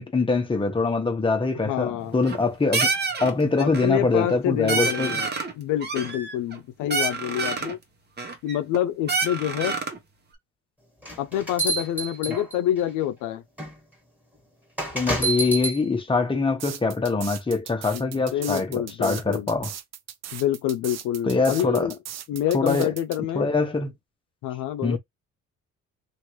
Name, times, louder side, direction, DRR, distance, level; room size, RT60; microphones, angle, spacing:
voice 1, 0.0-2.9 3.2-5.2 12.3-12.4 14.9-19.7 21.2-21.9 22.5-22.9 23.3-23.9 24.8-25.0, left 3 dB, 15° left, 1.0 m, -24 dB
voice 2, 1.6-2.2 3.6-5.3 5.6-7.8 8.4-9.8 11.2-13.4 17.9-18.0 18.3-19.5 20.3-22.0 22.3-23.5 24.4-25.0, left 11 dB, 90° left, 0.5 m, -27 dB
sound 1, 2.0-2.5 2.7-3.3 3.6-4.0 4.3-4.4 4.7-5.5 5.8-6.6 6.9-7.7 8.2-8.8 9.1-10.0, right 4 dB, 35° right, 0.9 m, -27 dB
sound 2, 11.0-12.8 13.6-13.7 14.8-15.8, right 2 dB, 5° right, 1.6 m, -28 dB
sound 3, 16.6-23.2, right 10 dB, 60° right, 0.5 m, -38 dB
3.0 x 2.5 x 3.0 m
cardioid pair, 90°, 30 cm